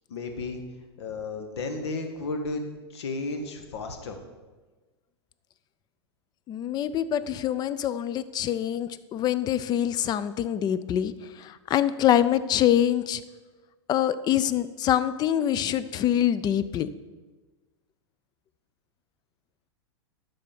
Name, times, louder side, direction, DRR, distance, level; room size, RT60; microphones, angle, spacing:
voice 1, 0.1-0.6 1.0-2.6 2.9-4.2, left 3 dB, 70° left, 5 dB, 1.3 m, -33 dB
voice 2, 6.5-13.2 13.9-16.9, left 11 dB, 30° left, 15 dB, 0.4 m, -25 dB
12.0 x 4.1 x 5.2 m, 1.3 s
hypercardioid pair, 105°, 14 cm